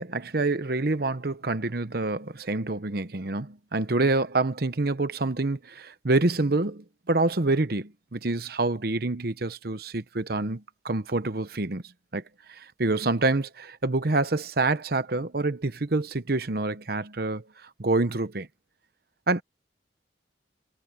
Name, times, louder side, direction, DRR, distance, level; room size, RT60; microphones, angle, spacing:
voice 1, 0.0-11.8 12.1-12.2 12.6-17.4 17.8-18.5 19.3-19.4, right 2 dB, 55° right, 1.0 m, -27 dB
head